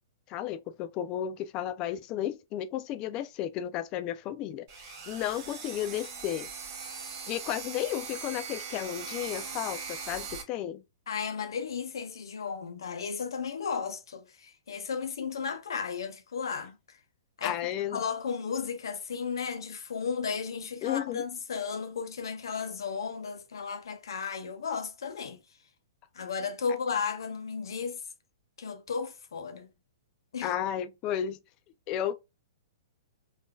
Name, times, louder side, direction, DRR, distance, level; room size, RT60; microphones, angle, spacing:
voice 1, 0.3-6.5 7.3-10.8 17.4-18.0 20.8-21.2 30.4-31.4 31.9-32.1, left 11 dB, 35° left, 0.4 m, -33 dB
sound 1, 4.7-10.4, right 5 dB, 45° right, 1.5 m, -40 dB
voice 2, 11.1-17.0 17.4-17.6 17.9-25.4 26.1-28.0 28.6-29.7 30.3-30.5, left 6 dB, 80° left, 0.8 m, -34 dB
3.7 x 2.6 x 2.3 m
hypercardioid pair, 135°, 2 cm